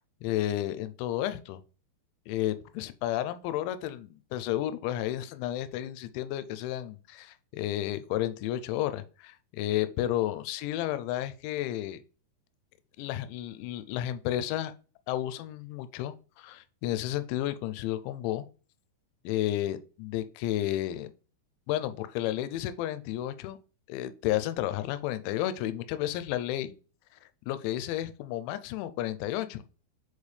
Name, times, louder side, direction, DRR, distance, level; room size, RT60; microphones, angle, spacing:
voice 1, 0.2-1.6 2.3-12.0 13.0-14.7 15.1-18.5 19.2-21.1 21.7-23.6 23.9-26.7 27.5-29.6, left 13 dB, 80° left, 2.7 m, -32 dB
7.2 x 4.2 x 3.2 m
omnidirectional pair, 5.4 m